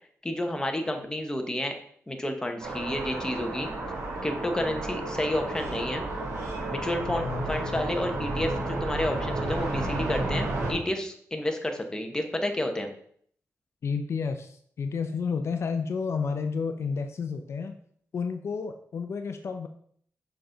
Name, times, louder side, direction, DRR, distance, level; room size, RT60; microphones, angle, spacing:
voice 1, 0.2-1.8 2.1-3.7 4.2-6.0 6.7-12.9, left 1 dB, 15° left, 4 dB, 1.0 m, -30 dB
sound 1, 2.6-10.7, right 2 dB, 80° right, 2.5 m, -32 dB
voice 2, 7.1-7.8 13.8-17.8 18.1-19.7, left 5 dB, 60° left, 7 dB, 0.5 m, -31 dB
6.8 x 5.2 x 3.9 m, 0.62 s
cardioid pair, 100°, 5 cm